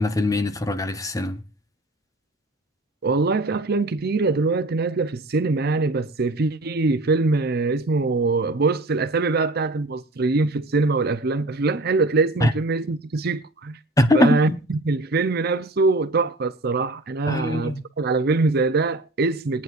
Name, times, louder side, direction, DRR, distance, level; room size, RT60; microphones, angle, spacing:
voice 1, 0.0-1.4 12.4-12.5 14.0-14.6 17.3-17.8, left 1 dB, 20° left, 0.8 m, -21 dB
voice 2, 3.0-13.8 14.1-19.6, right 3 dB, 55° right, 0.6 m, -23 dB
21.5 x 9.5 x 2.5 m
head